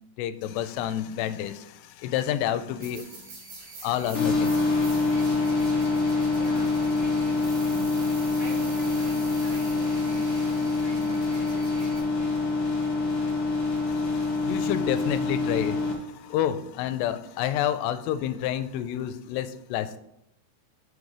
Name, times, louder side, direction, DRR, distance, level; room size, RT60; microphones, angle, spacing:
voice 1, 0.2-3.3 3.8-4.5 13.9-20.0, left 11 dB, 85° left, 12 dB, 2.7 m, -29 dB
sound 1, 2.8-12.0, right 3 dB, 65° right, 3.7 m, -45 dB
sound 2, 4.1-15.9, left 3 dB, 60° left, 1.4 m, -25 dB
voice 2, 6.3-8.0 8.4-12.5, right 1 dB, 20° right, -8 dB, 3.4 m, -44 dB
6.6 x 5.3 x 4.8 m, 0.77 s
omnidirectional pair, 4.7 m